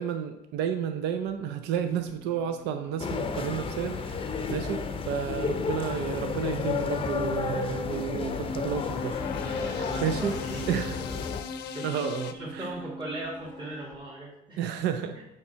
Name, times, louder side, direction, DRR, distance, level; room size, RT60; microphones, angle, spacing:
voice 1, 0.0-9.2 9.6-10.4 10.7-11.0 11.8-12.7 14.6-15.2, right 8 dB, 85° right, 7 dB, 0.5 m, -31 dB
sound 1, 1.3-13.9, equal, 55° right, 2.2 m, -47 dB
sound 2, 3.0-11.4, left 5 dB, 30° left, 0.5 m, -32 dB
sound 3, 7.8-12.3, left 7 dB, 85° left, 0.6 m, -39 dB
voice 2, 9.4-11.3 11.6-14.6 15.1-15.2, right 1 dB, 30° right, -5 dB, 1.5 m, -40 dB
7.0 x 3.3 x 5.6 m, 0.89 s
cardioid pair, 110°, 17 cm